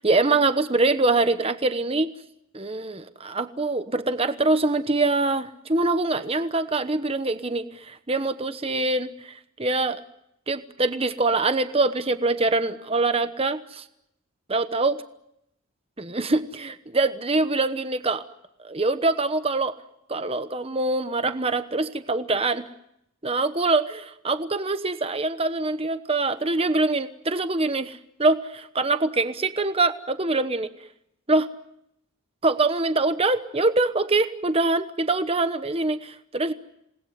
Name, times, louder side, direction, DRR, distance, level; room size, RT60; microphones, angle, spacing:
voice 1, 0.0-2.1 2.5-10.0 10.5-13.8 14.5-15.0 16.0-18.2 18.6-19.7 20.1-22.6 23.2-30.7 31.3-31.5 32.4-36.5, right 3 dB, 25° right, 11 dB, 1.0 m, -24 dB
27.5 x 19.5 x 9.5 m, 0.81 s
head